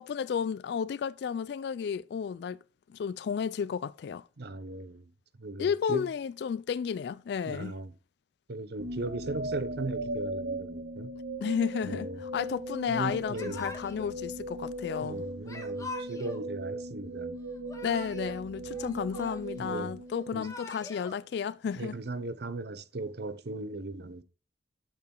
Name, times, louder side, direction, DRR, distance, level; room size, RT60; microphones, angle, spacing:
voice 1, 0.0-2.6 2.9-4.2 5.6-7.8 11.4-15.2 17.8-21.9, left 7 dB, 70° left, 0.3 m, -32 dB
voice 2, 4.4-5.0 5.4-6.1 7.5-7.9 8.5-11.1 11.8-12.2 12.9-13.7 15.0-17.4 19.6-19.9 20.3-20.5 21.8-24.2, right 2 dB, 65° right, 0.8 m, -37 dB
sound 1, 8.8-20.9, right 1 dB, 85° right, 1.7 m, -38 dB
Yell / Crying sobbing, 13.3-14.1 15.4-16.4 17.5-18.4 18.7-19.7 20.2-21.1, left 3 dB, 20° left, 1.5 m, -43 dB
8.6 x 6.7 x 3.7 m
head